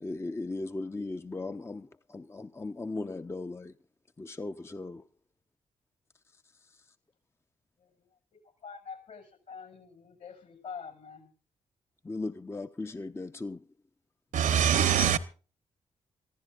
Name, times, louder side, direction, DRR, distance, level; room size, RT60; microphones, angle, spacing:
voice 1, 0.0-3.7 4.2-5.0 12.0-13.6, left 2 dB, 20° left, 0.6 m, -37 dB
voice 2, 8.6-11.3, left 6 dB, 70° left, 6.5 m, -45 dB
voice 3, 14.3-15.2, right 9 dB, 75° right, 1.1 m, -23 dB
25.5 x 15.0 x 2.5 m
supercardioid pair, 55°, 13 cm